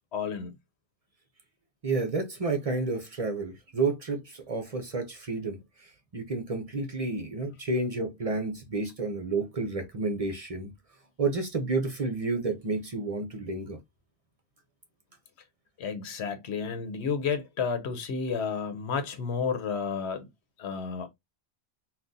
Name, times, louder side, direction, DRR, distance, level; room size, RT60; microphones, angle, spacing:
voice 1, 0.1-0.5 15.8-20.3 20.6-21.1, left 6 dB, 85° left, 1.0 m, -31 dB
voice 2, 1.8-10.7 11.2-13.8, right 3 dB, 40° right, 0.6 m, -30 dB
3.7 x 2.4 x 2.6 m
omnidirectional pair, 1.1 m